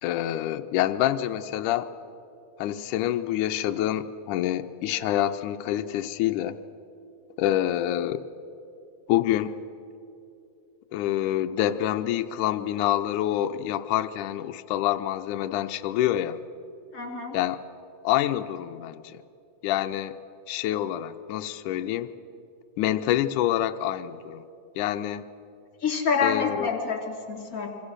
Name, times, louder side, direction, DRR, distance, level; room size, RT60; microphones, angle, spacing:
voice 1, 0.0-1.9 2.6-6.6 7.4-8.3 9.1-9.6 10.9-16.4 17.3-17.6 18.0-19.2 19.6-20.2 20.5-22.1 22.8-24.4 24.8-25.3 26.2-26.7, left 12 dB, 85° left, 9 dB, 1.7 m, -27 dB
voice 2, 16.9-17.3 25.8-27.7, left 5 dB, 25° left, 2 dB, 2.9 m, -27 dB
27.0 x 25.5 x 6.4 m, 2.6 s
omnidirectional pair, 4.5 m